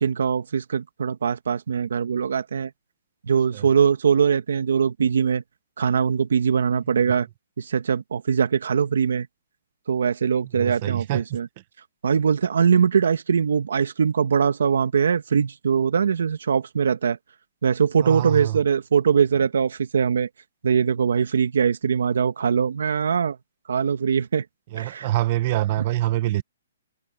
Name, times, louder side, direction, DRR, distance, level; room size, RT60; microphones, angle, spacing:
voice 1, 0.0-2.7 3.3-5.4 5.8-7.3 7.6-9.3 9.9-11.5 12.0-17.2 17.6-20.3 20.6-23.4 23.7-24.4 24.8-25.1, right 6 dB, 75° right, 1.6 m, -22 dB
voice 2, 10.5-11.2 18.0-18.6 24.7-26.4, right 15 dB, 30° right, 1.0 m, -25 dB
hypercardioid pair, 175°, 0 cm